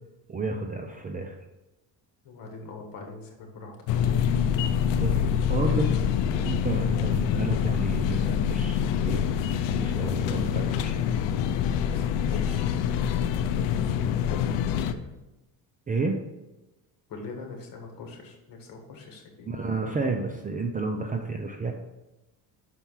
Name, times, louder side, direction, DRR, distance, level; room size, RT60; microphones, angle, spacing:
voice 1, 0.3-1.4 4.9-5.9 6.3-9.2 9.5-11.0 15.9-16.2 19.5-21.7, right 3 dB, 20° right, 3 dB, 0.5 m, -31 dB
voice 2, 2.2-4.2 5.4-5.9 11.8-12.7 14.6-15.1 17.1-19.5, left 3 dB, 50° left, 2 dB, 1.8 m, -43 dB
sound 1, 3.9-14.9, left 8 dB, 75° left, 0.6 m, -25 dB
6.0 x 4.5 x 5.7 m, 1.0 s
cardioid pair, 130°, 43 cm